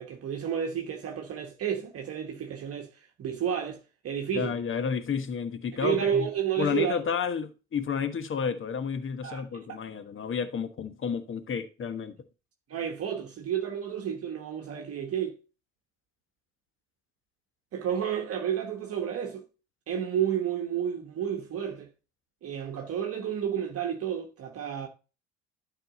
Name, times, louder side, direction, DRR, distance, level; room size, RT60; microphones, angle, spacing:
voice 1, 0.0-4.5 5.8-7.0 9.2-9.8 12.7-15.4 17.7-19.4 19.9-21.9 22.4-24.9, right 8 dB, 40° right, 1.2 m, -31 dB
voice 2, 4.3-6.3 6.6-12.3, left 6 dB, 35° left, 1.3 m, -31 dB
12.0 x 4.9 x 3.8 m
hypercardioid pair, 60°, 34 cm